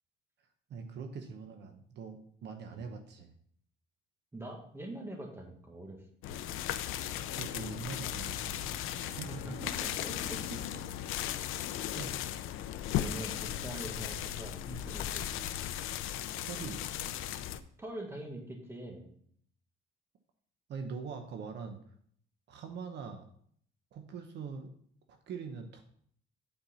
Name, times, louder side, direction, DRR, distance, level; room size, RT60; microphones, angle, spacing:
voice 1, 0.7-3.3 7.4-9.3 11.9-12.2 15.4-15.5 16.4-17.1 20.7-21.8 22.5-23.3 23.9-24.7 25.1-25.8, right 5 dB, 60° right, 5 dB, 0.9 m, -43 dB
voice 2, 4.3-6.4 9.3-10.8 12.9-15.2 17.8-19.1, right 1 dB, 10° right, 1 dB, 1.6 m, -44 dB
sound 1, 6.2-17.6, left 11 dB, 85° left, 0.6 m, -37 dB
8.7 x 4.5 x 5.7 m, 0.62 s
cardioid pair, 155°, 21 cm